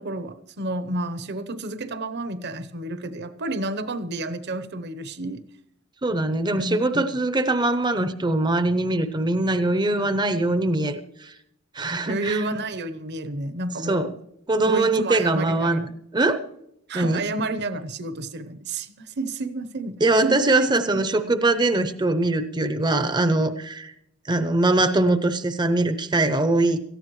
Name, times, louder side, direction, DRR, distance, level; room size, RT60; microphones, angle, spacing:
voice 1, 0.0-5.4 6.6-7.0 12.1-14.1 14.6-15.9 16.9-20.6 20.9-21.0, right 2 dB, 50° right, 13 dB, 0.9 m, -30 dB
voice 2, 6.0-11.3 11.7-12.4 13.8-14.1 14.5-15.9 16.1-16.4 16.9-17.2 20.0-23.9 24.3-26.8, right 2 dB, 20° right, 10 dB, 0.7 m, -22 dB
18.0 x 14.5 x 3.1 m, 0.79 s
head